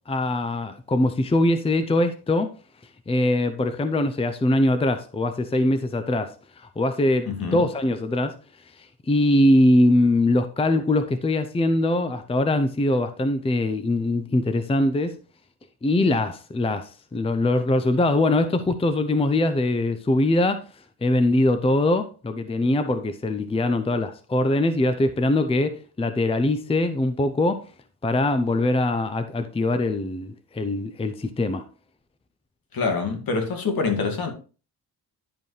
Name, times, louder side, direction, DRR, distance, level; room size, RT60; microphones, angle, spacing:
voice 1, 0.1-2.5 3.1-8.3 8.7-15.2 15.8-20.6 21.0-27.6 28.0-31.6, left 1 dB, 15° left, 0.6 m, -22 dB
voice 2, 7.3-7.6 32.7-34.3, left 4 dB, 60° left, 2.1 m, -25 dB
11.0 x 5.3 x 3.2 m
cardioid pair, 90°, 41 cm